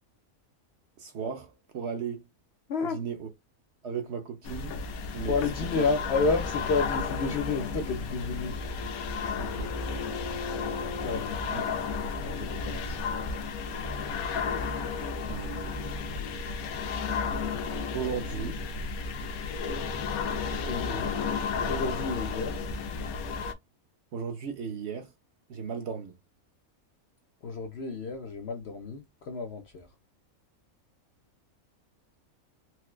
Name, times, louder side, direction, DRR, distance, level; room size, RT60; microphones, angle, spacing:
voice 1, 1.0-2.3 2.9-3.3 3.8-4.7 5.1-5.3 5.7-5.8 9.4-9.7 11.5-11.6 15.3-16.1 17.9-18.6 24.1-25.1 25.5-26.2, right 6 dB, 60° right, 0.8 m, -36 dB
sound 1, 4.4-23.5, left 5 dB, 80° left, 1.1 m, -33 dB
voice 2, 5.3-8.6 11.0-11.4 12.2-13.0 20.7-21.2 21.7-22.5 27.4-29.9, left 4 dB, 65° left, 0.7 m, -31 dB
Bowed string instrument, 7.8-11.4, left 4 dB, 45° left, 1.0 m, -41 dB
4.3 x 2.1 x 2.3 m
omnidirectional pair, 1.5 m